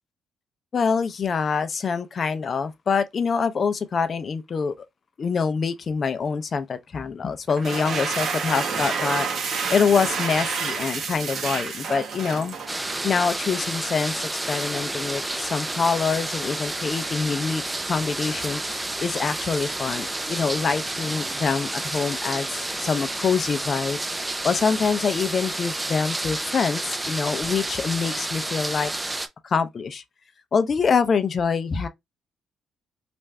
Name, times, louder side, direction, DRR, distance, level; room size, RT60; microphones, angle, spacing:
voice 1, 0.7-4.7 5.2-9.3 9.7-12.6 13.0-24.0 24.4-28.9 29.4-30.0 30.5-31.9, left 5 dB, 45° left, 0.5 m, -25 dB
sound 1, 7.5-13.1, right 5 dB, 55° right, 1.1 m, -29 dB
sound 2, 12.7-29.3, right 2 dB, 15° right, 0.5 m, -30 dB
3.4 x 2.5 x 3.2 m
cardioid pair, 90°, 0 cm